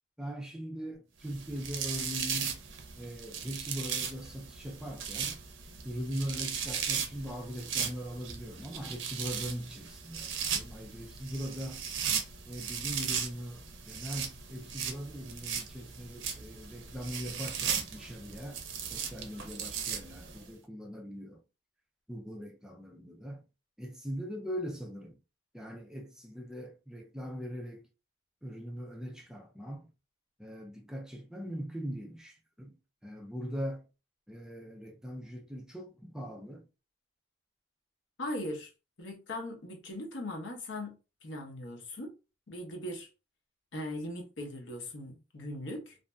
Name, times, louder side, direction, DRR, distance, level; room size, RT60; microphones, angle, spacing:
voice 1, 0.2-2.6 3.0-5.4 5.8-11.9 12.5-18.6 18.9-21.4 22.1-23.4 23.8-25.2 25.5-27.8 28.4-29.9 30.4-32.8 33.0-33.9 34.3-36.7, equal, 5° right, 0.3 m, -40 dB
sound 1, 1.3-20.4, right 7 dB, 85° right, 0.6 m, -37 dB
voice 2, 38.2-38.7 39.0-41.0 41.2-42.1 42.5-43.1 43.7-46.0, left 1 dB, 80° left, 0.8 m, -39 dB
2.6 x 2.5 x 2.2 m
head